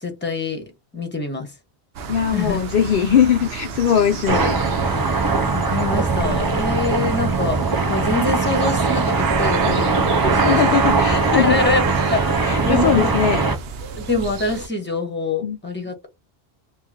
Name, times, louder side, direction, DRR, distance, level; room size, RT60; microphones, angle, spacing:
voice 1, 0.0-0.7 0.9-1.5 2.3-2.6 5.1-10.8 11.3-11.8 12.1-13.1 14.0-16.1, left 3 dB, 10° left, 1.2 m, -25 dB
sound 1, 1.9-14.7, right 6 dB, 75° right, 0.8 m, -32 dB
voice 2, 2.1-4.6 10.3-11.6 11.9-13.4 15.4-15.6, left 8 dB, 65° left, 0.7 m, -20 dB
sound 2, 4.3-13.6, right 4 dB, 35° right, 0.4 m, -20 dB
4.7 x 2.5 x 2.8 m
omnidirectional pair, 1.1 m